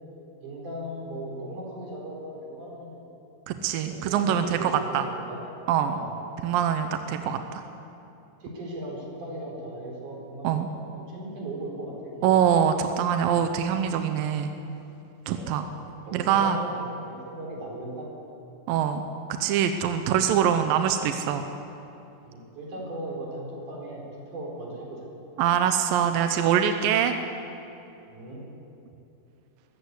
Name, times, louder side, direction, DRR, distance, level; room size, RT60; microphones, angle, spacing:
voice 1, 0.4-3.1 3.9-5.4 5.9-6.1 7.1-7.2 8.4-11.9 12.2-12.5 15.2-15.5 16.0-18.1 22.3-25.1 28.1-28.4, right 1 dB, 45° right, -2 dB, 5.6 m, -37 dB
voice 2, 3.5-5.1 5.7-6.0 6.4-7.6 10.4-10.7 12.2-14.5 15.3-15.7 16.1-16.6 18.7-19.0 19.3-21.5 25.4-27.2, right 8 dB, 75° right, 7 dB, 2.2 m, -24 dB
23.0 x 14.5 x 8.4 m, 2.8 s
omnidirectional pair, 4.9 m